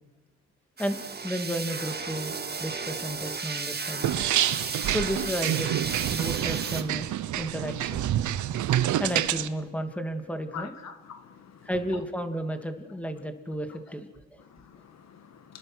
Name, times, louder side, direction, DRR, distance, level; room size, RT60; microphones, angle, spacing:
voice 1, 0.8-4.1 4.9-7.1 7.4-8.0 9.0-10.7 11.6-14.4, equal, 5° left, 2.7 m, -33 dB
sound 1, 0.8-6.8, right 5 dB, 35° right, 1.9 m, -34 dB
sound 2, 4.0-9.5, right 12 dB, 75° right, 1.1 m, -27 dB
voice 2, 10.5-12.0 14.4-15.6, left 7 dB, 60° left, 1.9 m, -45 dB
29.5 x 20.5 x 6.3 m
cardioid pair, 90°, 30 cm